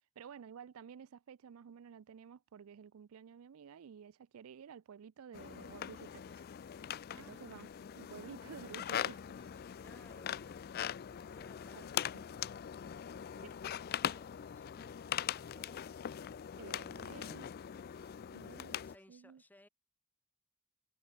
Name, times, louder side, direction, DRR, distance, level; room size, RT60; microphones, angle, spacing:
voice 1, 0.2-6.5 7.2-7.7 7.9-9.5 11.7-11.9 12.1-12.2 16.6-17.5 18.0-18.8 19.1-19.4, right 7 dB, 85° right, 0.4 m, -52 dB
sound 1, 5.3-19.0, left 9 dB, 45° left, 0.3 m, -41 dB
voice 2, 7.1-7.5 9.4-12.5 13.2-15.0 15.3-15.9 18.8-19.7, left 1 dB, 10° left, 1.5 m, -63 dB
Bass guitar, 9.2-19.0, equal, 30° right, 3.5 m, -71 dB
head